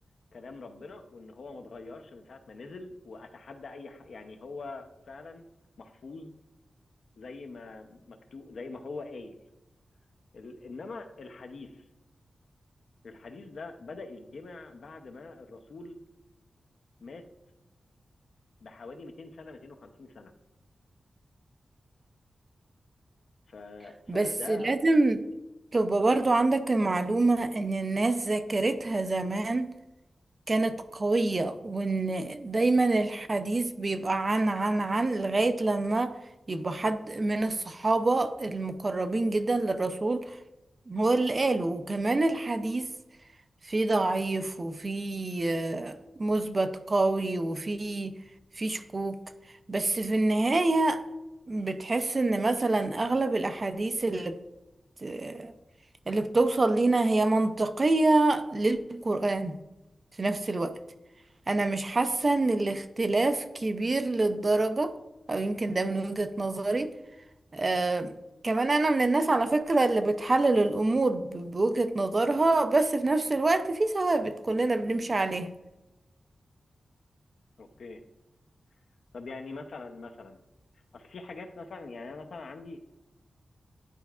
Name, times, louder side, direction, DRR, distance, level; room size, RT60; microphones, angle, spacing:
voice 1, 0.3-5.5 5.8-6.4 7.2-9.4 10.3-11.8 13.0-16.0 17.0-17.3 18.6-20.3 23.5-24.8 77.6-78.0 79.1-80.4 80.9-82.8, left 3 dB, 65° left, 6 dB, 0.7 m, -43 dB
voice 2, 24.1-25.2 25.7-29.7 30.5-36.1 36.5-40.4 40.9-42.9 43.6-48.2 48.6-49.2 49.7-51.0 51.5-54.4 55.0-55.5 56.1-59.6 60.2-60.8 61.5-64.9 65.3-66.9 67.5-68.1 68.4-75.5, right 2 dB, 30° right, 10 dB, 0.4 m, -26 dB
11.0 x 4.5 x 2.4 m, 1.0 s
wide cardioid pair, 170°, 0 cm